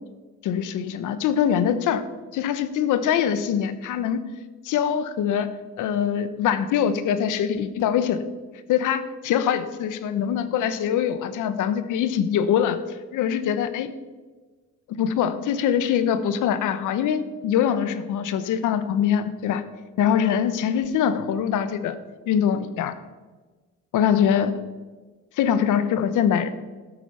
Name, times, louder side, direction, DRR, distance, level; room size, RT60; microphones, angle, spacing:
voice 1, 0.4-2.0 2.3-4.2 4.6-5.5 5.8-8.2 8.7-12.8 13.1-13.9 14.9-19.6 20.0-22.0 22.3-23.0 23.9-24.5 25.4-26.5, left 8 dB, 85° left, 12 dB, 1.0 m, -23 dB
12.5 x 8.0 x 5.6 m, 1.3 s
cardioid pair, 90°, 30 cm